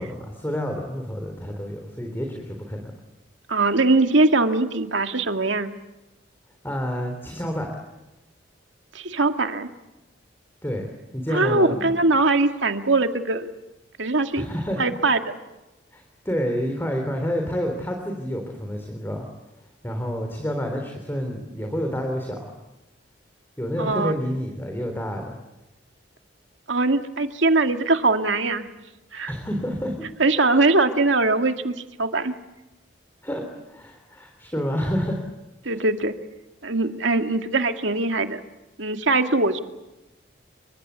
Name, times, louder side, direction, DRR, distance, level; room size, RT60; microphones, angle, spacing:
voice 1, 0.0-2.9 6.6-7.7 10.6-10.9 11.1-12.0 14.3-14.9 15.9-19.3 19.8-22.4 23.6-25.4 29.3-30.1 33.2-33.4 33.7-35.2 35.7-35.8, equal, 10° left, 3 dB, 3.6 m, -29 dB
voice 2, 3.5-5.7 8.9-9.7 11.3-13.5 14.0-14.5 14.8-15.2 23.8-24.1 26.7-28.7 29.1-29.3 30.2-32.3 35.7-36.2 36.6-38.4 38.8-39.6, right 3 dB, 75° right, 6 dB, 2.1 m, -21 dB
28.5 x 25.0 x 8.4 m, 1.0 s
head